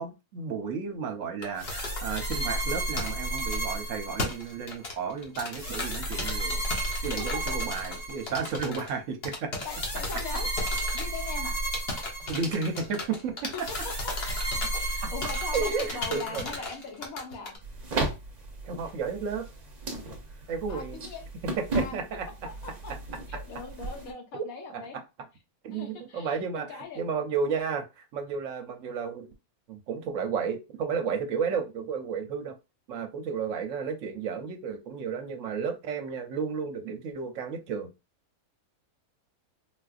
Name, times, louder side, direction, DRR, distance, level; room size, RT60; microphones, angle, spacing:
voice 1, 0.0-6.6 7.0-9.5 12.3-13.5 15.0-15.1 15.5-16.6 18.7-19.5 20.5-21.0 21.6-22.3 24.3-24.4 24.7-25.0 25.6-29.3 29.7-32.6 32.9-37.9, right 6 dB, 65° right, 0.9 m, -32 dB
sound 1, 1.4-3.8 4.2-8.9 9.2-11.5 11.7-14.9 15.2-17.6, left 2 dB, 50° left, 1.0 m, -36 dB
sound 2, 1.6-4.7 5.5-8.6 9.6-12.8 13.6-16.7, right 1 dB, 85° left, 2.1 m, -33 dB
voice 2, 9.6-10.5 10.9-11.6 13.5-13.9 14.7-17.6 20.7-21.3 21.7-22.0 22.6-22.9 23.3-25.0 25.7-27.0, left 4 dB, 70° left, 1.3 m, -40 dB
sound 3, 17.6-24.1, right 2 dB, 40° right, 0.7 m, -35 dB
3.8 x 2.5 x 2.4 m
omnidirectional pair, 1.5 m